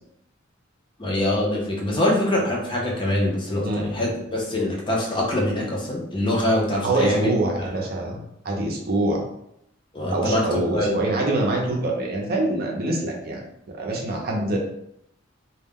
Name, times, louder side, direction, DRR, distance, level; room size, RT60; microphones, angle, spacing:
voice 1, 1.0-7.3 9.9-10.9, left 1 dB, 25° left, -2 dB, 0.6 m, -24 dB
voice 2, 6.8-9.2 10.1-13.4 13.7-14.6, right 2 dB, 50° right, -1 dB, 0.5 m, -24 dB
2.3 x 2.1 x 3.5 m, 0.76 s
head